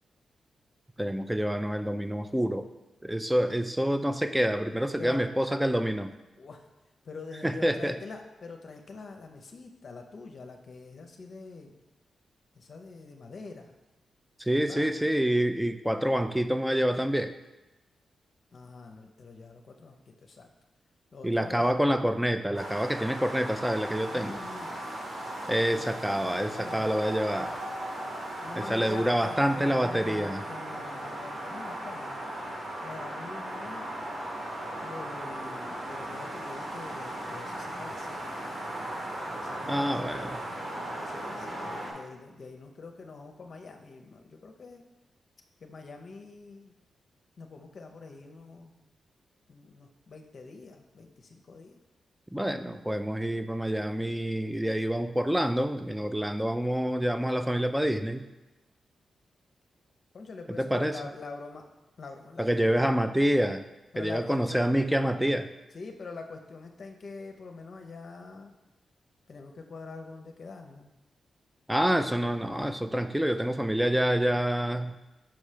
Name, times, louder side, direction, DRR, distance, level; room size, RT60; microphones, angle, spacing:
voice 1, 1.0-2.7 3.0-6.1 7.4-8.0 14.4-17.3 21.2-24.4 25.5-27.5 28.6-30.4 39.7-40.3 52.3-58.3 60.6-60.9 62.4-63.7 64.0-65.5 71.7-75.0, equal, 5° right, 9 dB, 0.5 m, -27 dB
voice 2, 7.0-11.8 12.6-13.7 14.5-14.9 18.5-20.5 21.1-21.7 24.1-24.8 25.5-26.9 28.4-32.2 32.8-33.9 34.8-38.6 39.3-40.3 41.0-44.8 45.6-46.7 47.4-48.9 49.5-51.8 60.1-61.7 62.0-62.9 63.9-64.6 65.7-68.6 69.3-70.9, left 4 dB, 60° left, 3 dB, 0.7 m, -45 dB
sound 1, 22.5-41.9, right 1 dB, 50° right, 2.3 m, -37 dB
5.9 x 4.3 x 5.0 m, 1.1 s
cardioid pair, 55°, 0 cm